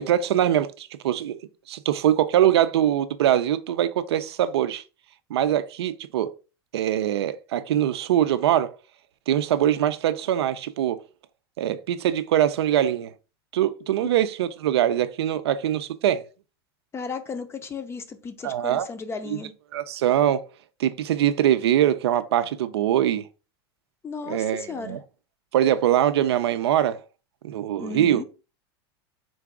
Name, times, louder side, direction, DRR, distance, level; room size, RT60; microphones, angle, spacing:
voice 1, 0.0-1.4 1.7-4.8 5.3-6.3 6.7-8.7 9.3-11.0 11.6-13.1 13.5-16.2 18.4-18.9 19.3-19.4 19.7-20.4 20.8-23.2 24.3-25.0 25.5-27.0 27.4-28.2, right 11 dB, 90° right, 0.4 m, -23 dB
voice 2, 16.9-19.5 24.0-25.0 27.8-28.2, left 4 dB, 20° left, 0.5 m, -35 dB
3.8 x 2.5 x 3.5 m
supercardioid pair, 120°, 13 cm